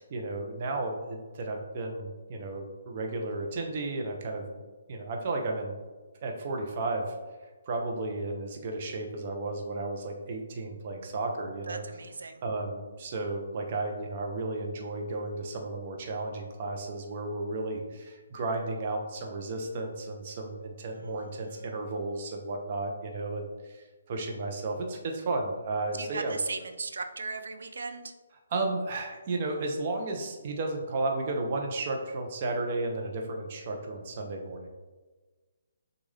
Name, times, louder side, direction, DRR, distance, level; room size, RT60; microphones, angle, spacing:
voice 1, 0.1-4.6 4.9-5.8 6.2-7.2 7.7-11.8 12.4-26.4 28.5-34.7, right 2 dB, 40° right, 2 dB, 0.8 m, -33 dB
voice 2, 11.7-12.4 20.9-21.7 26.0-28.1, right 4 dB, 75° right, 8 dB, 0.5 m, -38 dB
6.3 x 2.5 x 3.4 m, 1.3 s
hypercardioid pair, 150°, 0 cm